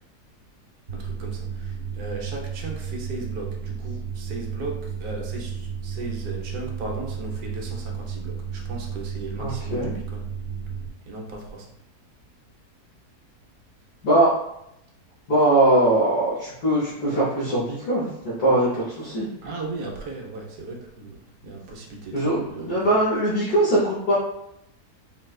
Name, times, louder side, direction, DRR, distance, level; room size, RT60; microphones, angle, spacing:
sound 1, 0.9-10.9, right 6 dB, 55° right, 1.6 m, -33 dB
voice 1, 0.9-10.3 11.0-11.7 19.4-21.2 21.4-22.9, right 3 dB, 70° right, 0 dB, 1.2 m, -36 dB
voice 2, 9.4-10.0 14.0-14.3 15.3-19.3 21.5-21.6 22.1-24.1, right 1 dB, 75° left, -9 dB, 1.5 m, -21 dB
4.4 x 2.2 x 2.3 m, 0.80 s
omnidirectional pair, 1.7 m